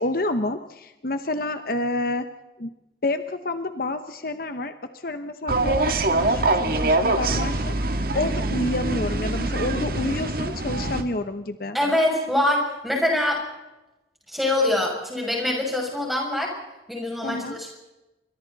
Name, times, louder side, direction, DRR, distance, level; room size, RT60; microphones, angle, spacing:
voice 1, 0.0-2.3 2.6-2.7 3.0-11.8 17.2-17.6, left 2 dB, 50° left, 9 dB, 0.9 m, -29 dB
sound 1, 5.5-11.0, right 2 dB, 50° right, 1.8 m, -24 dB
voice 2, 11.7-13.4 14.3-16.5 16.9-17.8, left 1 dB, ahead, -1 dB, 6.7 m, -24 dB
28.0 x 24.5 x 4.1 m, 1.0 s
head